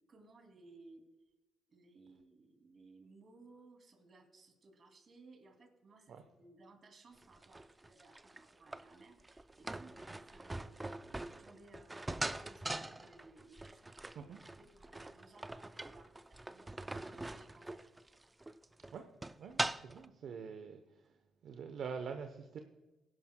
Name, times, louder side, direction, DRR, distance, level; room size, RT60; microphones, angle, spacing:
voice 1, 0.1-1.0 1.7-13.8 14.2-17.9, right 3 dB, 45° right, 4 dB, 2.5 m, -61 dB
sound 1, 7.2-20.1, right 2 dB, 15° right, 0.4 m, -43 dB
voice 2, 19.4-20.8 21.4-22.6, right 6 dB, 65° right, 6 dB, 0.8 m, -45 dB
19.5 x 11.0 x 2.2 m, 1.1 s
cardioid pair, 90°, 0 cm